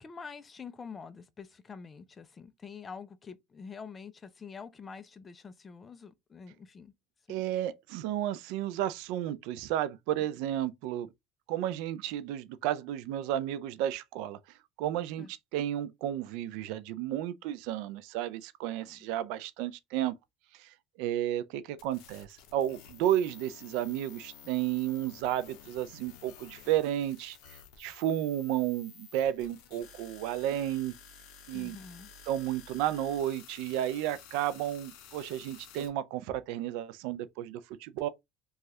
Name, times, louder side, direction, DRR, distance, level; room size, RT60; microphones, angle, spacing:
voice 1, 0.0-6.9 7.3-7.4 15.2-15.3 18.8-19.0 31.5-32.1, left 5 dB, 25° left, 0.4 m, -46 dB
voice 2, 7.3-11.1 11.5-14.4 14.8-20.2 20.6-20.7 21.0-30.9 31.5-31.8 32.3-38.1, right 12 dB, 75° right, 0.3 m, -32 dB
sound 1, 21.8-35.9, left 7 dB, 70° left, 0.6 m, -53 dB
3.1 x 2.3 x 2.7 m
cardioid pair, 130°, 0 cm